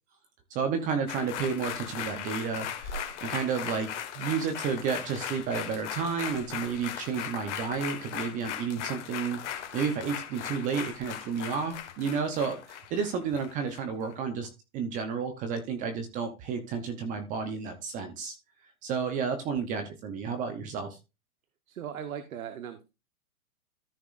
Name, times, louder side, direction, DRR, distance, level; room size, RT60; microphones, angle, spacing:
voice 1, 0.5-18.4 18.8-21.0, right 6 dB, 20° right, 7 dB, 0.8 m, -31 dB
sound 1, 1.1-13.8 14.1-14.2, left 9 dB, 55° left, 1.6 m, -38 dB
voice 2, 21.7-22.8, right 9 dB, 70° right, 10 dB, 1.1 m, -38 dB
13.5 x 5.9 x 2.5 m, 0.27 s
hypercardioid pair, 140°, 43 cm